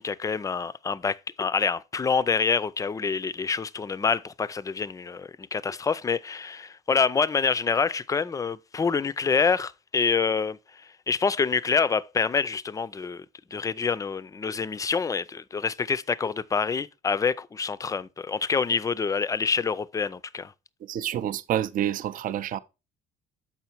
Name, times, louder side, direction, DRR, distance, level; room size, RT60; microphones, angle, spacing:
voice 1, 0.0-13.3 13.5-20.5, left 5 dB, 20° left, 0.4 m, -27 dB
voice 2, 20.8-22.6, right 11 dB, 55° right, 0.5 m, -28 dB
7.0 x 5.5 x 4.4 m
cardioid pair, 110°, 17 cm